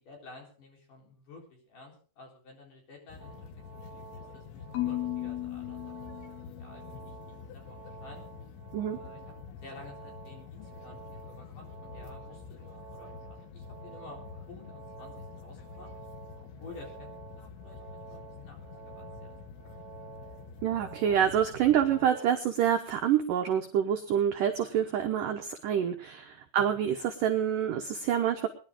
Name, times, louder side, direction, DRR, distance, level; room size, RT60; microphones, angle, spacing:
voice 1, 0.0-3.5 4.3-6.1 6.4-7.1 7.4-8.2 8.9-9.2 9.6-14.2 14.5-15.9 16.3-17.1 17.4-19.4, left 3 dB, 45° left, 0 dB, 5.3 m, -51 dB
sound 1, 3.1-22.1, left 6 dB, 90° left, 3.6 m, -48 dB
sound 2, 3.2-22.4, right 7 dB, 45° right, 1.9 m, -50 dB
Marimba xylophone / Wood, 4.7-6.9, left 15 dB, 70° left, 3.0 m, -35 dB
voice 2, 20.6-28.5, right 9 dB, 80° right, 4 dB, 1.9 m, -27 dB
22.0 x 11.0 x 3.7 m, 0.38 s
omnidirectional pair, 5.2 m